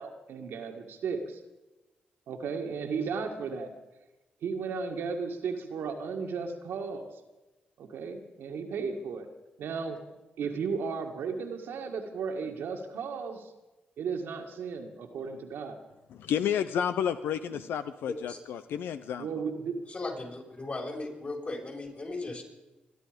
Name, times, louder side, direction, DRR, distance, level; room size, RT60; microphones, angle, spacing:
voice 1, 0.0-1.4 2.3-3.7 4.4-7.1 7.8-9.3 9.6-10.0 10.4-13.5 14.0-15.8 17.5-17.7 19.2-19.8, right 5 dB, 75° right, 3 dB, 1.9 m, -35 dB
voice 2, 16.1-19.3, left 8 dB, 80° left, 11 dB, 0.6 m, -31 dB
voice 3, 18.1-18.4 19.9-22.4, left 2 dB, 45° left, 0 dB, 6.0 m, -37 dB
24.5 x 11.0 x 5.2 m, 1.1 s
supercardioid pair, 50°, 4 cm